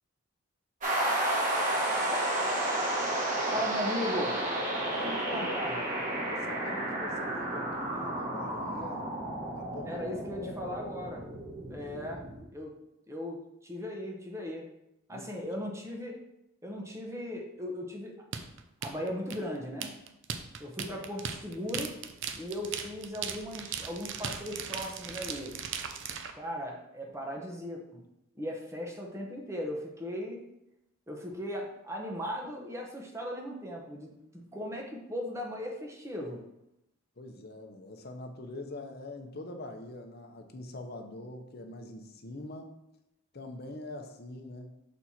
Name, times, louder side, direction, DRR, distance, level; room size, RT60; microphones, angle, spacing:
sound 1, 0.8-12.4, right 1 dB, 40° right, 1.5 m, -32 dB
voice 1, 3.5-4.4 5.0-5.8 9.8-11.3 11.6-12.2 12.5-12.7 13.1-14.6 15.1-16.2 16.6-18.1 18.8-19.9 20.6-21.9 22.3-25.5 26.3-28.0 28.4-30.4 31.1-36.4, equal, 15° right, 0 dB, 0.9 m, -37 dB
voice 2, 4.8-5.6 6.3-9.1 9.5-10.1 10.4-10.5 15.1-15.5 20.9-21.0 37.2-42.8 43.3-44.7, left 2 dB, 50° left, 5 dB, 0.8 m, -44 dB
sound 2, 18.3-26.3, right 7 dB, 60° right, 0.5 m, -38 dB
6.2 x 4.3 x 4.2 m, 0.85 s
head